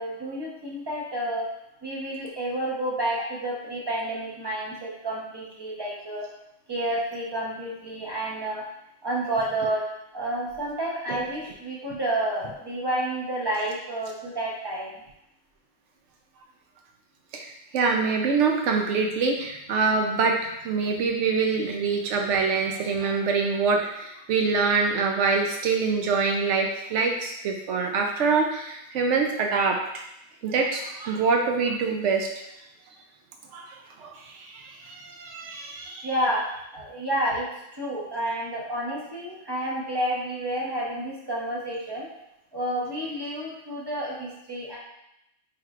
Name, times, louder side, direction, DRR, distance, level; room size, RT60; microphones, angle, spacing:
voice 1, 0.0-1.5 1.8-6.2 6.7-8.6 9.0-9.8 10.1-14.9 36.0-36.4 36.7-42.1 42.5-44.8, right 1 dB, 25° right, -4 dB, 0.8 m, -30 dB
voice 2, 17.3-30.0 30.4-32.3 33.5-36.1, right 4 dB, 75° right, 2 dB, 0.9 m, -25 dB
4.3 x 3.6 x 2.4 m, 0.84 s
omnidirectional pair, 1.3 m